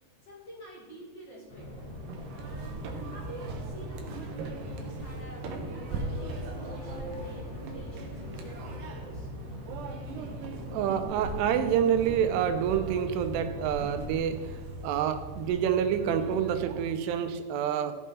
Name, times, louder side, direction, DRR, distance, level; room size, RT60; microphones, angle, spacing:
voice 1, 0.2-1.7 2.3-5.6 5.9-9.3, right 1 dB, 90° left, -4 dB, 0.9 m, -48 dB
sound 1, 1.5-14.2, left 1 dB, 55° left, 1.4 m, -42 dB
sound 2, 1.6-16.9, right 2 dB, 70° right, 2.0 m, -40 dB
voice 2, 10.7-17.9, right 9 dB, 85° right, 8 dB, 2.8 m, -28 dB
14.5 x 5.5 x 4.1 m, 1.4 s
omnidirectional pair, 4.7 m